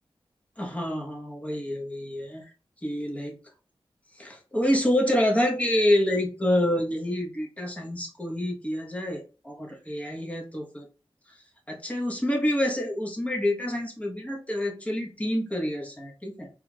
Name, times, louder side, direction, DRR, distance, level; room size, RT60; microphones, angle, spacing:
voice 1, 0.6-2.4 2.8-3.3 4.2-10.9 11.7-16.5, left 1 dB, 15° left, 0 dB, 1.0 m, -27 dB
4.3 x 2.9 x 2.3 m, 0.35 s
wide cardioid pair, 90°, 9 cm